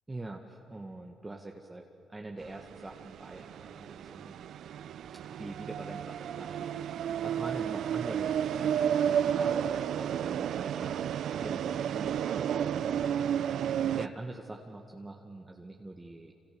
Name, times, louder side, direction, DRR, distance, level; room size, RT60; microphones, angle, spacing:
voice 1, 0.1-4.3 5.4-9.7 9.9-11.1 11.4-13.7 13.9-16.3, right 2 dB, 20° right, 1 dB, 1.9 m, -44 dB
sound 1, 2.4-14.1, right 9 dB, 70° right, 0.6 m, -32 dB
28.5 x 27.5 x 7.0 m, 2.7 s
cardioid pair, 90°, 0 cm